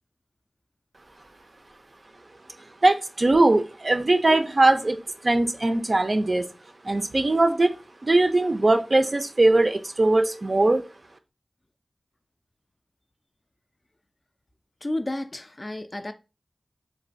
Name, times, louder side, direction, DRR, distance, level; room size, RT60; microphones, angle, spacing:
voice 1, 2.8-6.5 6.8-7.7 8.0-10.9, right 2 dB, 50° right, 0.4 m, -21 dB
voice 2, 14.8-16.1, left 1 dB, 40° left, 0.3 m, -31 dB
3.1 x 2.2 x 2.5 m
wide cardioid pair, 50°, 0 cm